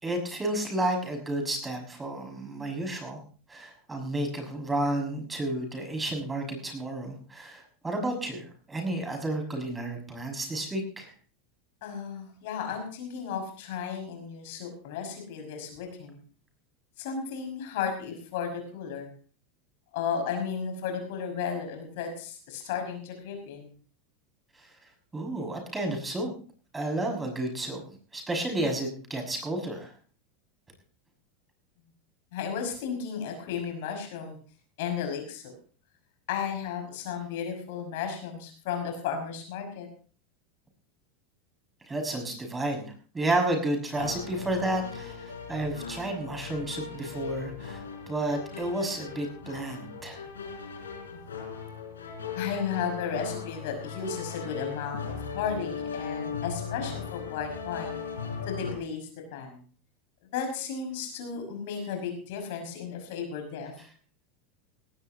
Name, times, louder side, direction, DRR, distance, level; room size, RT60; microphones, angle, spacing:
voice 1, 0.0-3.2 3.5-11.1 24.6-24.7 25.1-26.3 26.7-27.8 28.1-29.9 41.9-50.2, right 1 dB, 15° right, 3 dB, 6.0 m, -31 dB
voice 2, 11.8-16.2 17.0-19.1 19.9-23.7 32.3-34.4 34.8-35.5 36.3-39.9 51.1-51.2 52.3-58.0 58.5-59.6 60.3-63.7, left 6 dB, 65° left, 4 dB, 5.9 m, -34 dB
sound 1, 43.9-58.7, left 6 dB, 85° left, 4.3 m, -38 dB
18.5 x 17.0 x 2.9 m, 0.41 s
hypercardioid pair, 90°, 0 cm